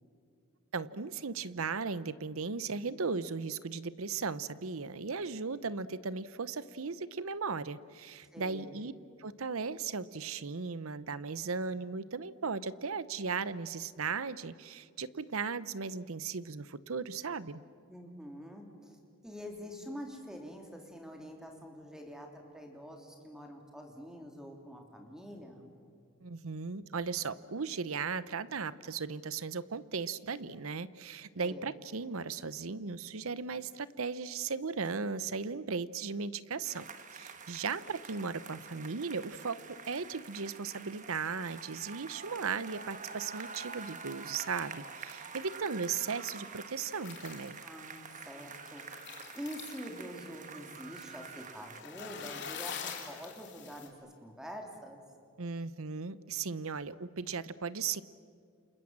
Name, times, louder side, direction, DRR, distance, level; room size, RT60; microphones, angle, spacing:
voice 1, 0.7-8.9 9.2-17.6 26.2-36.9 37.1-47.6 55.4-58.0, right 5 dB, 70° right, 16 dB, 0.8 m, -37 dB
voice 2, 8.3-8.7 17.9-19.0 19.2-25.7 31.4-31.7 47.6-48.8 49.3-55.0, equal, 5° right, 1 dB, 3.0 m, -46 dB
sound 1, 36.6-51.8, right 5 dB, 35° right, 1.3 m, -47 dB
sound 2, 42.7-43.8 44.1-44.7 45.2-45.7 46.0-46.6 46.9-53.9, left 7 dB, 50° left, 3.3 m, -46 dB
29.0 x 27.5 x 7.4 m, 2.3 s
head